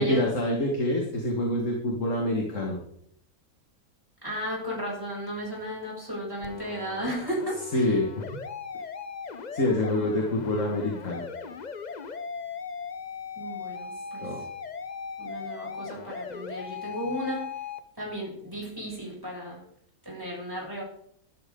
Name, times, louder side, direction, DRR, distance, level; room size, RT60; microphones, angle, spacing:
voice 1, 0.0-2.8 7.7-8.1 9.5-11.3 14.2-14.5, left 1 dB, 55° left, 0 dB, 2.2 m, -26 dB
voice 2, 4.2-8.0 13.4-14.3 15.2-17.5 18.0-19.6 20.0-20.8, equal, 15° right, -4 dB, 7.0 m, -34 dB
sound 1, 6.4-17.8, left 5 dB, 40° left, 0.7 m, -38 dB
14.5 x 12.5 x 3.8 m, 0.68 s
omnidirectional pair, 1.6 m